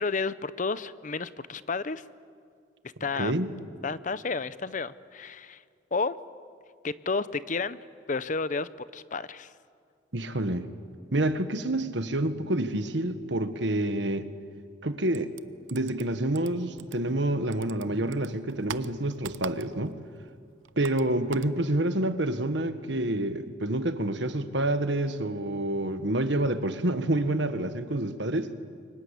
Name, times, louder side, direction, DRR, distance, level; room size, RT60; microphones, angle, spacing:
voice 1, 0.0-2.0 3.0-3.3 3.8-5.6 5.9-6.2 6.8-7.8 8.1-9.5, left 4 dB, 40° left, 16 dB, 0.7 m, -31 dB
voice 2, 3.1-3.5 10.1-10.7 11.1-14.3 14.8-15.3 15.7-20.0 20.8-28.5, right 1 dB, 65° right, 10 dB, 1.6 m, -28 dB
sound 1, 15.1-17.3 17.5-20.0 20.3-21.6, right 7 dB, 85° right, 0.8 m, -43 dB
29.5 x 24.0 x 8.3 m, 2.2 s
head